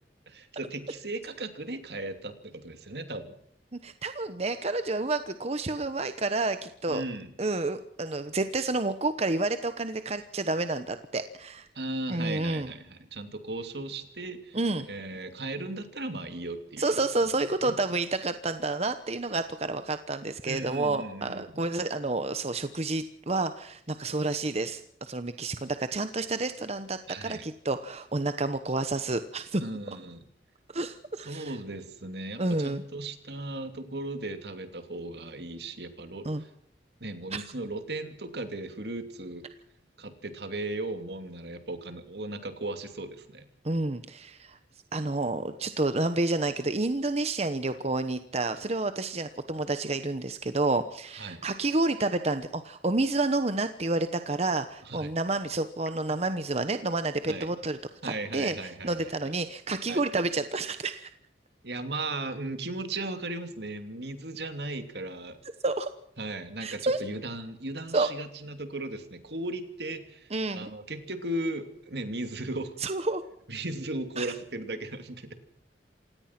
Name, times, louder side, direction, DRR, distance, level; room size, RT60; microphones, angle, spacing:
voice 1, 0.3-3.3 6.9-7.3 11.7-14.6 14.9-17.1 17.6-18.0 20.4-21.8 27.1-27.5 29.6-30.2 31.2-36.5 37.0-39.4 40.0-43.5 51.1-51.4 54.8-55.1 57.3-57.5 58.0-59.0 59.2-59.3 59.9-60.0 61.6-65.4 66.2-72.7 73.5-75.3, right 2 dB, 65° right, 8 dB, 2.8 m, -37 dB
voice 2, 3.7-7.0 7.4-11.7 12.1-12.7 14.5-14.9 16.8-29.6 30.7-31.5 32.4-32.8 36.2-36.4 37.3-37.4 43.6-44.6 44.9-57.8 58.0-61.1 65.6-65.9 66.6-67.0 67.9-68.1 70.3-70.7 72.8-73.2 74.2-74.3, right 2 dB, 35° right, 10 dB, 1.0 m, -29 dB
27.5 x 18.0 x 6.0 m, 0.70 s
head